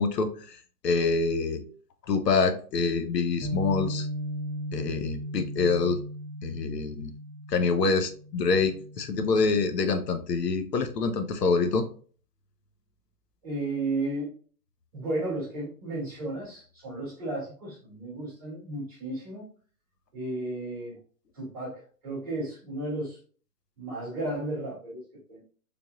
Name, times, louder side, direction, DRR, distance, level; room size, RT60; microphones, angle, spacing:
voice 1, 0.0-1.6 2.1-4.1 4.7-6.0 6.4-7.1 7.5-11.9, left 4 dB, 85° left, 8 dB, 0.8 m, -26 dB
Bass guitar, 3.4-9.7, equal, 45° left, 1.4 m, -36 dB
voice 2, 13.4-14.3 14.9-19.4 20.1-20.9 21.3-23.2 23.8-25.4, right 2 dB, 25° right, -5 dB, 1.4 m, -34 dB
3.5 x 2.9 x 2.3 m, 0.43 s
hypercardioid pair, 180°, 48 cm